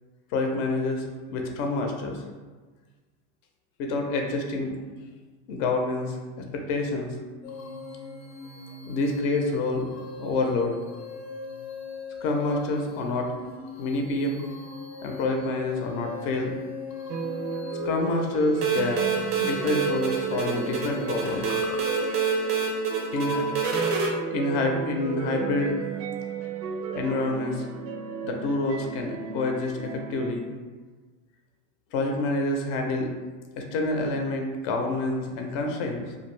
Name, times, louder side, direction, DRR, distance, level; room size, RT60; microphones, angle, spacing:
voice 1, 0.3-2.2 3.8-4.8 5.5-7.2 8.9-9.9 10.2-10.8 12.2-13.3 13.8-14.4 15.0-16.5 17.8-19.1 19.4-21.8 23.1-23.9 24.3-25.7 26.9-27.7 28.2-30.4 31.9-33.1 33.6-36.0, left 2 dB, 50° left, 2 dB, 0.6 m, -27 dB
sound 1, 7.4-22.3, left 4 dB, 90° left, 0.7 m, -41 dB
sound 2, 17.1-30.3, right 5 dB, 85° right, 0.6 m, -34 dB
sound 3, 18.6-24.1, right 5 dB, 30° right, 0.4 m, -28 dB
2.5 x 2.3 x 3.1 m, 1.4 s
supercardioid pair, 120°, 49 cm